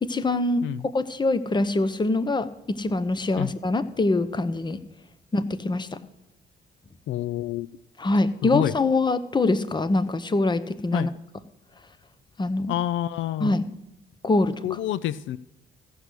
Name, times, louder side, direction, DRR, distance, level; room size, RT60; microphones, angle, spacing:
voice 1, 0.0-0.7 0.9-4.8 5.3-6.0 8.0-11.1 12.4-12.7 13.4-13.7 14.2-14.8, left 2 dB, 20° left, 14 dB, 0.8 m, -24 dB
voice 2, 7.1-7.7 8.4-8.7 10.9-11.1 12.7-13.6 14.6-15.4, left 12 dB, 75° left, 18 dB, 0.4 m, -28 dB
15.0 x 6.3 x 8.2 m, 0.87 s
cardioid pair, 90°, 20 cm